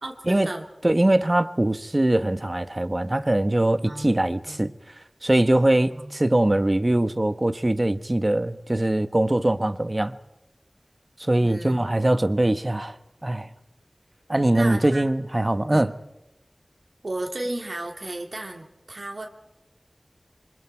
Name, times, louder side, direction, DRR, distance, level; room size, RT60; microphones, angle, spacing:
voice 1, 0.0-0.7 3.9-4.1 4.4-4.7 5.5-6.1 11.4-12.0 14.5-15.1 15.7-15.8 17.0-19.3, right 2 dB, 70° right, 2.6 m, -34 dB
voice 2, 0.8-4.7 5.2-10.2 11.2-13.0 13.2-13.5 14.3-15.9, right 1 dB, 35° right, 1.2 m, -22 dB
27.5 x 24.5 x 4.6 m
wide cardioid pair, 45°, 0 cm